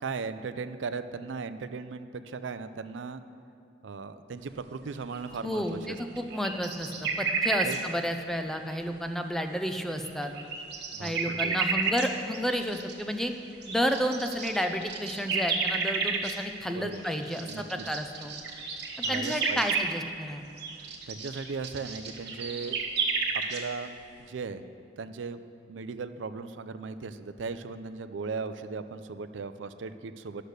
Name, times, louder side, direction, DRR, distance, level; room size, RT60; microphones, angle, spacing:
voice 1, 0.0-3.2 3.8-6.0 7.6-7.8 10.9-11.6 16.7-17.0 17.5-17.9 19.0-19.6 21.1-22.8 23.3-23.9 24.3-24.6 25.0-25.4 25.7-30.4, right 4 dB, 75° right, 11 dB, 0.5 m, -37 dB
sound 1, 5.1-5.6 5.8-7.8 8.6-8.7 9.9-12.1 12.3-13.0 13.4-19.9 20.6-23.6, right 5 dB, 60° right, 1.2 m, -31 dB
voice 2, 5.4-10.3 11.0-13.3 13.7-18.3 19.1-20.4, equal, ahead, 6 dB, 0.5 m, -31 dB
11.5 x 6.6 x 6.5 m, 2.6 s
head